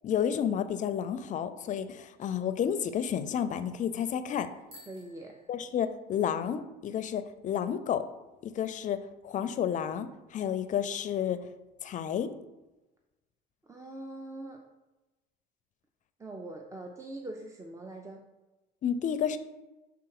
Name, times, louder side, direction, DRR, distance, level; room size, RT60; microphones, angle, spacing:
voice 1, 0.0-4.5 5.5-8.0 8.4-9.0 9.2-11.4 11.8-12.3 18.8-19.4, left 8 dB, 50° left, 11 dB, 0.5 m, -31 dB
Bicycle bell, 4.6-6.4, left 1 dB, 35° right, 2.2 m, -56 dB
voice 2, 4.9-5.3 13.6-14.6 16.2-18.2, right 2 dB, 20° right, 2 dB, 0.6 m, -42 dB
6.0 x 3.5 x 4.7 m, 1.1 s
cardioid pair, 110°, 17 cm